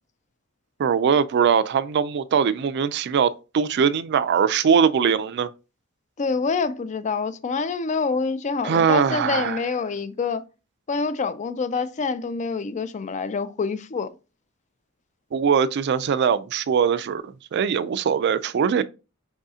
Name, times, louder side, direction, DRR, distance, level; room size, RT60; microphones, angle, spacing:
voice 1, 0.8-5.5 8.6-9.6 15.3-18.8, right 7 dB, 55° right, 0.3 m, -21 dB
voice 2, 6.2-10.4 10.9-14.1, left 4 dB, 35° left, 0.4 m, -26 dB
4.8 x 2.7 x 3.6 m
head